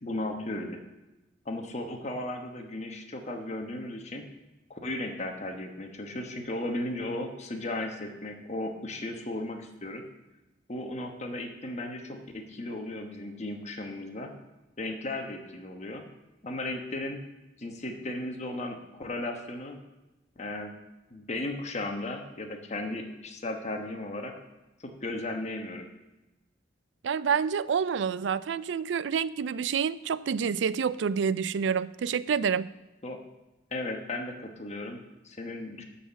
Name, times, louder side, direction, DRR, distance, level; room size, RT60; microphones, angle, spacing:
voice 1, 0.0-0.8 1.4-4.3 4.7-10.0 10.7-14.3 14.8-16.0 16.4-17.2 17.6-19.8 20.4-20.7 21.1-24.3 24.8-25.9 33.0-33.2 33.7-35.8, left 1 dB, 35° left, 4 dB, 1.1 m, -35 dB
voice 2, 27.0-32.7, right 6 dB, 70° right, 17 dB, 0.4 m, -28 dB
12.0 x 4.3 x 6.9 m, 1.0 s
head